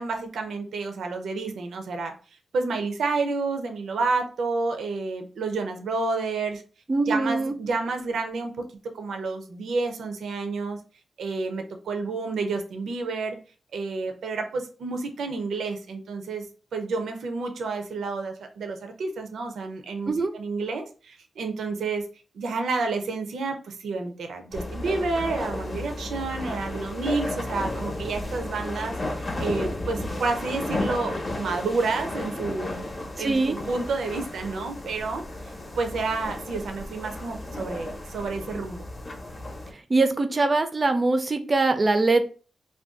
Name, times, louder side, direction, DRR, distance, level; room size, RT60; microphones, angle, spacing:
voice 1, 0.0-2.1 2.5-6.6 7.1-8.5 8.9-10.8 11.2-13.4 13.7-16.5 16.7-22.0 22.3-29.0 29.4-32.8 33.2-35.2 35.8-38.9, right 3 dB, 85° right, 5 dB, 0.5 m, -30 dB
voice 2, 6.9-7.5 20.1-20.3 33.2-33.6 39.9-42.3, right 3 dB, 30° right, 8 dB, 0.4 m, -22 dB
sound 1, 24.5-39.7, left 1 dB, 35° left, 0.7 m, -33 dB
2.5 x 2.2 x 3.6 m, 0.37 s
wide cardioid pair, 115°, 0 cm